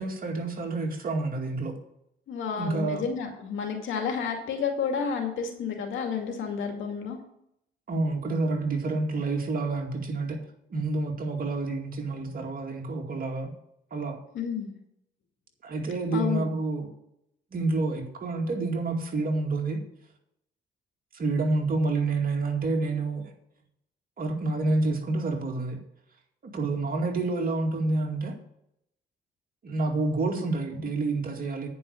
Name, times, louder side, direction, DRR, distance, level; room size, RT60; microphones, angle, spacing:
voice 1, 0.0-1.7 2.5-3.0 7.9-10.4 10.7-13.5 13.9-14.2 15.6-16.9 17.5-19.8 21.1-23.3 24.2-25.8 26.4-28.4 29.6-31.7, right 3 dB, 45° right, 2 dB, 2.2 m, -28 dB
voice 2, 2.3-7.2 14.3-14.7 16.1-16.4, left 6 dB, 80° left, 3 dB, 2.4 m, -30 dB
9.6 x 5.5 x 8.3 m, 0.76 s
cardioid pair, 90°, 20 cm